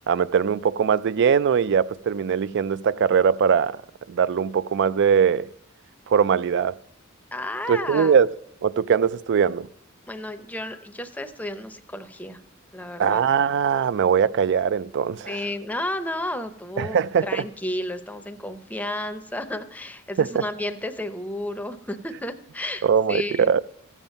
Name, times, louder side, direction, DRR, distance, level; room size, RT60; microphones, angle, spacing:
voice 1, 0.1-3.8 4.1-5.5 6.1-6.7 7.7-8.3 8.6-9.7 13.0-15.4 16.8-17.2 20.2-20.4 22.8-23.6, right 7 dB, 55° right, 0.4 m, -21 dB
voice 2, 7.3-8.2 10.1-12.4 12.7-13.2 15.3-23.5, left 1 dB, 5° left, 0.6 m, -32 dB
14.5 x 7.3 x 5.3 m
head